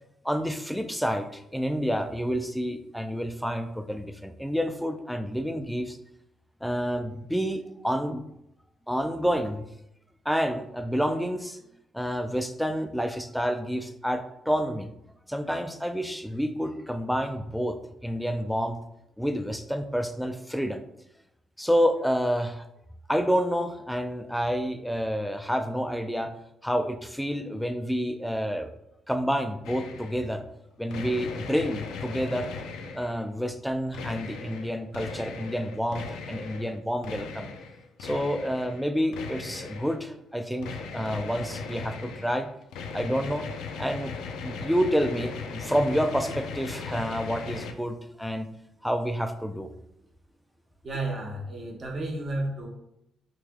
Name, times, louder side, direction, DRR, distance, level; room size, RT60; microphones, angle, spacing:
voice 1, 0.2-6.0 6.6-8.2 8.9-9.7 10.3-11.6 11.9-14.9 15.3-18.8 19.2-20.8 21.6-22.7 23.1-26.3 26.6-28.7 29.1-30.4 30.8-32.5 32.9-37.5 38.0-42.5 42.9-43.5 43.8-44.1 44.4-48.5 48.8-49.7, equal, ahead, 7 dB, 0.3 m, -29 dB
sound 1, 29.6-30.3 30.9-33.2 33.9-36.8 37.0-38.8 39.1-40.0 40.6-47.7, left 5 dB, 90° left, 0.4 m, -38 dB
voice 2, 50.8-52.7, right 2 dB, 45° right, 0 dB, 1.0 m, -32 dB
3.2 x 2.9 x 3.5 m, 0.80 s
cardioid pair, 90°, 0 cm